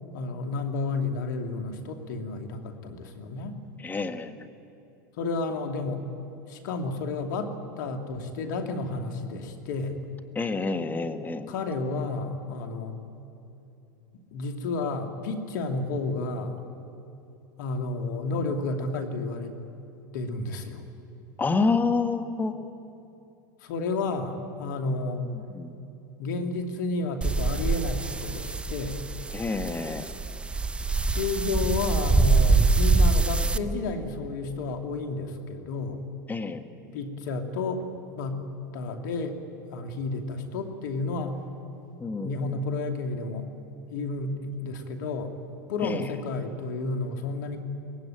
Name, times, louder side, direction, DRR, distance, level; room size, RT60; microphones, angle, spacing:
voice 1, 0.1-3.6 5.2-6.0 6.5-10.0 11.5-13.0 14.3-16.6 17.6-19.6 20.1-20.8 23.6-25.3 26.2-29.0 31.1-36.0 36.9-37.9 38.2-38.4 38.7-39.4 39.7-41.4 42.2-43.5 43.9-45.3 45.7-47.6, left 3 dB, 65° left, 5 dB, 2.6 m, -31 dB
voice 2, 3.8-4.4 10.3-11.5 21.4-22.6 25.3-25.8 29.3-30.0 36.3-36.6 42.0-42.6 45.8-46.0, left 4 dB, 15° left, 7 dB, 1.5 m, -28 dB
sound 1, 27.2-33.6, right 3 dB, 10° right, 0.7 m, -24 dB
23.0 x 18.0 x 9.0 m, 2.8 s
hypercardioid pair, 100°, 10 cm